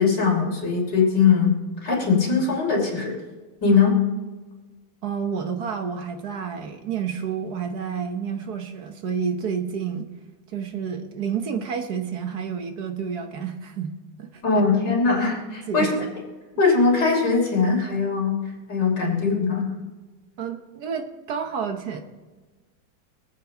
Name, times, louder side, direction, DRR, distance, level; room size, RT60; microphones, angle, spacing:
voice 1, 0.0-3.2 3.6-4.0 14.4-16.0 16.6-18.4 18.7-19.7, left 5 dB, 55° left, -3 dB, 4.2 m, -21 dB
voice 2, 5.0-10.1 10.5-14.4 15.7-15.9 20.4-22.0, right 7 dB, 55° right, 6 dB, 1.4 m, -29 dB
23.5 x 8.4 x 3.9 m, 1.3 s
omnidirectional pair, 2.2 m